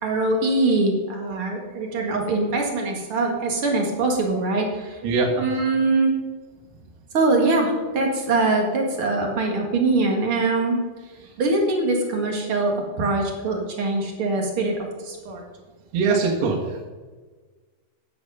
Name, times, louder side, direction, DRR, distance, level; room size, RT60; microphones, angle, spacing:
voice 1, 0.0-5.0 5.4-6.1 7.1-10.8 11.4-14.7 15.0-15.4, right 2 dB, 45° right, 1 dB, 1.8 m, -23 dB
voice 2, 5.0-5.4 15.9-16.8, right 4 dB, 80° right, -1 dB, 3.6 m, -22 dB
11.5 x 8.4 x 5.6 m, 1.4 s
omnidirectional pair, 4.8 m